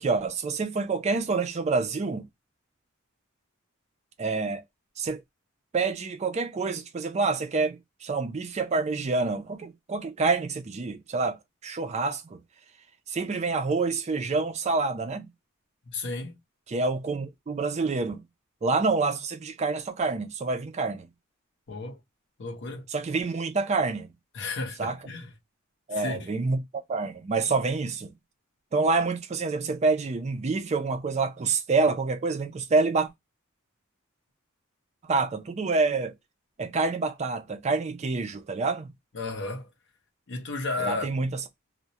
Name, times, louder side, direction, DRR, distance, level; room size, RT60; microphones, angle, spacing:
voice 1, 0.0-2.3 4.2-4.6 5.0-5.2 5.7-11.4 11.6-12.4 13.1-15.3 16.7-18.2 18.6-21.1 22.9-24.1 24.8-25.0 25.9-26.6 26.9-28.1 28.7-33.1 35.0-36.1 36.6-38.9 40.8-41.3, right 3 dB, 30° right, 0.3 m, -27 dB
voice 2, 15.9-16.4 21.7-22.0 22.4-22.9 24.3-25.3 25.9-26.3 39.1-39.7 40.3-41.1, left 3 dB, 55° left, 0.7 m, -33 dB
2.3 x 2.0 x 2.7 m
head